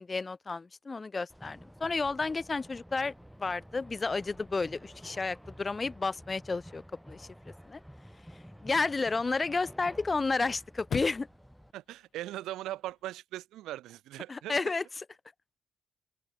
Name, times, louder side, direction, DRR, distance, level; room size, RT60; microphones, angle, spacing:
voice 1, 0.0-3.1 3.4-7.3 7.6-7.8 8.6-11.3 14.3-15.0, left 3 dB, 25° left, 2.2 m, -31 dB
sound 1, 1.3-11.7, equal, ahead, 4.6 m, -51 dB
Chirp tweet / Car / Slam, 3.1-13.1, left 8 dB, 55° left, 7.4 m, -48 dB
voice 2, 11.7-14.6, right 14 dB, 85° right, 3.9 m, -39 dB
open air
cardioid pair, 90°, 0 cm